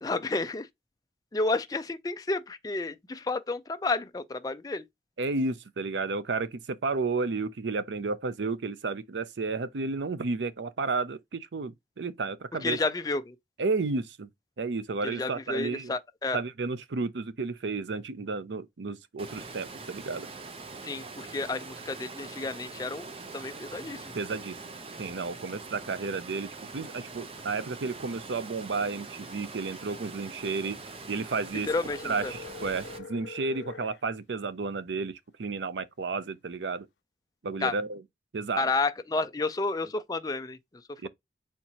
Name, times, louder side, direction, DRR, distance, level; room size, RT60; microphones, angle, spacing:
voice 1, 0.0-0.7 1.3-4.8 12.6-13.4 15.0-16.4 20.8-24.2 31.6-32.3 37.6-37.7 38.6-40.6 40.9-41.1, left 3 dB, 20° left, 0.4 m, -31 dB
voice 2, 5.2-12.8 13.6-14.3 14.6-15.9 16.3-20.3 24.1-24.6 25.0-26.5 26.7-30.8 31.1-31.7 32.0-36.9 37.4-38.0 38.3-38.6 41.0-41.1, right 4 dB, 85° right, 0.6 m, -32 dB
Water, 19.2-33.0, right 3 dB, 30° right, 0.6 m, -43 dB
sound 1, 31.9-34.0, left 4 dB, 80° left, 0.6 m, -44 dB
4.4 x 3.6 x 2.8 m
head